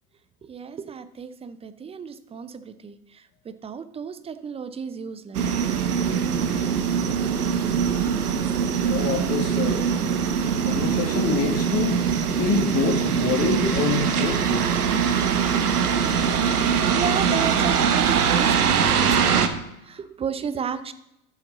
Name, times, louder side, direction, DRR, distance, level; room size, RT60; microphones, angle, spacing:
voice 1, 0.4-3.0 3.5-5.4 16.9-19.5 19.9-20.9, right 6 dB, 15° right, 13 dB, 0.5 m, -32 dB
sound 1, 5.3-19.5, right 7 dB, 85° right, 1.0 m, -22 dB
voice 2, 8.8-9.9 10.6-12.0 12.3-14.7, left 5 dB, 30° left, 3 dB, 1.9 m, -26 dB
12.0 x 7.1 x 4.0 m, 0.86 s
hypercardioid pair, 90°, 45 cm